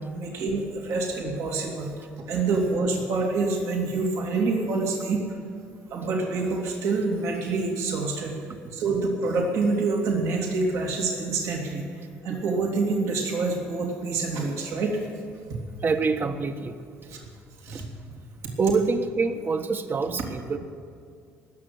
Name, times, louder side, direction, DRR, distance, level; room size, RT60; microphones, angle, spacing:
voice 1, 0.1-1.9 2.3-5.2 5.9-8.4 8.7-11.8 12.2-15.0 17.1-17.3 17.6-17.8, right 3 dB, 70° right, 0 dB, 2.6 m, -26 dB
voice 2, 15.8-16.8 17.7-17.8 18.6-20.6, right 4 dB, 40° right, 8 dB, 1.2 m, -26 dB
18.0 x 7.0 x 9.4 m, 2.3 s
supercardioid pair, 70°, 5 cm